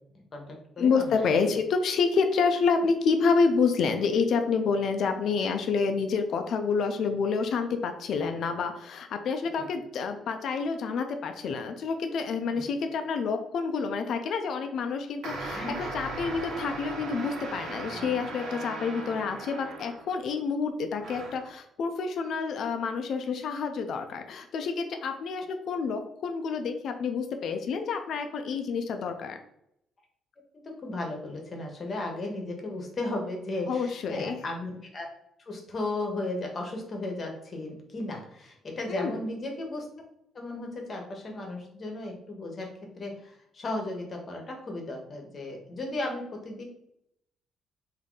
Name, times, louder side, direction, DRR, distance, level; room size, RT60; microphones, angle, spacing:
voice 1, 0.1-1.5 9.6-9.7 12.5-12.6 15.5-15.9 30.5-35.1 35.5-39.9 40.3-46.6, left 2 dB, 30° left, 1 dB, 0.9 m, -35 dB
voice 2, 0.8-15.6 15.9-29.4 33.7-34.4 38.9-39.2, left 5 dB, 55° left, 6 dB, 0.4 m, -28 dB
sound 1, 15.2-20.3 21.0-21.5, right 2 dB, 85° right, 1.1 m, -38 dB
3.7 x 2.6 x 3.7 m, 0.76 s
cardioid pair, 160°, 0 cm